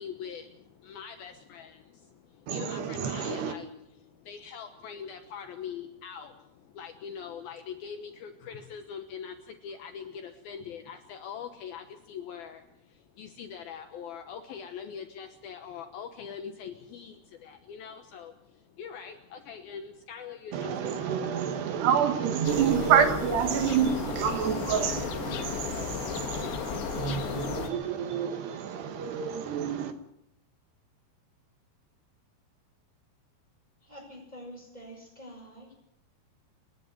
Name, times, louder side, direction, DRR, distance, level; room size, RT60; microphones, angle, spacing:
voice 1, 0.0-21.2, left 7 dB, 70° left, 2.7 m, -43 dB
voice 2, 2.5-3.5 20.5-29.9, right 8 dB, 75° right, 3.4 m, -28 dB
sound 1, 22.5-27.7, left 8 dB, 85° left, 3.9 m, -34 dB
voice 3, 33.8-35.7, equal, 10° left, 7.5 m, -46 dB
29.0 x 10.5 x 9.8 m
omnidirectional pair, 5.0 m